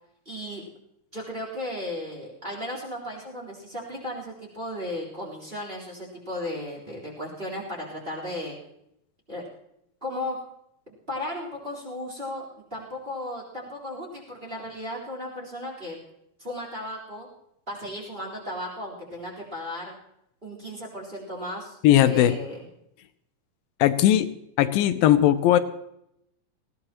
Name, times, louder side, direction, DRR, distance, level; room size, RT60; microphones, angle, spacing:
voice 1, 0.3-0.6 1.1-8.6 9.3-9.4 10.0-10.4 11.1-12.4 12.7-16.0 16.4-17.3 17.7-19.9 20.4-21.8 22.0-22.6, left 1 dB, 15° right, -3 dB, 3.6 m, -35 dB
voice 2, 21.8-22.3 23.8-24.3 24.6-25.6, left 12 dB, 85° left, 11 dB, 2.5 m, -18 dB
20.0 x 16.0 x 3.0 m, 0.78 s
omnidirectional pair, 4.1 m